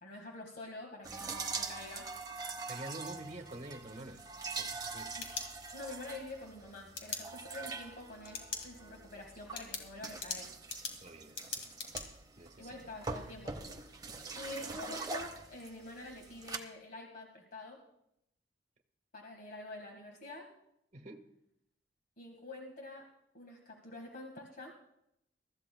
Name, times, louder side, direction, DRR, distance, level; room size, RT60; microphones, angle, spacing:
voice 1, 0.0-2.1 5.2-5.3 5.7-8.4 8.6-10.5 12.6-13.8 14.4-17.8 19.1-20.5 22.2-23.1 23.3-24.7, left 2 dB, 50° left, 1.8 m, -47 dB
sound 1, 1.0-16.6, right 4 dB, 25° right, 1.0 m, -44 dB
voice 2, 2.7-4.2 4.6-5.1 11.0-11.7 12.4-12.8 20.9-21.2, right 1 dB, 40° right, 1.3 m, -47 dB
sound 2, 5.2-6.0 6.9-7.2 8.2-8.7 9.0-9.1 9.5-12.0, left 5 dB, 85° left, 2.3 m, -41 dB
23.0 x 14.0 x 2.3 m
head